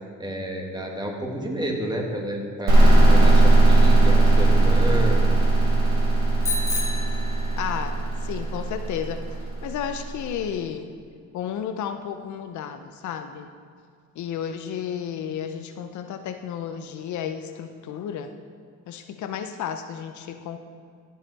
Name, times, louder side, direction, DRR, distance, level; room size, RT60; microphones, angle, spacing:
voice 1, 0.2-2.8 3.0-5.2, equal, 15° right, 0 dB, 1.7 m, -30 dB
sound 1, 2.7-10.2, right 2 dB, 65° right, 2.6 m, -18 dB
Bicycle bell, 6.4-8.0, left 3 dB, 10° left, 1.5 m, -31 dB
voice 2, 7.6-10.9 11.3-13.5 14.2-18.3 18.9-20.6, left 8 dB, 70° left, 8 dB, 0.6 m, -32 dB
14.5 x 5.6 x 4.1 m, 2.2 s
cardioid pair, 90°, 30 cm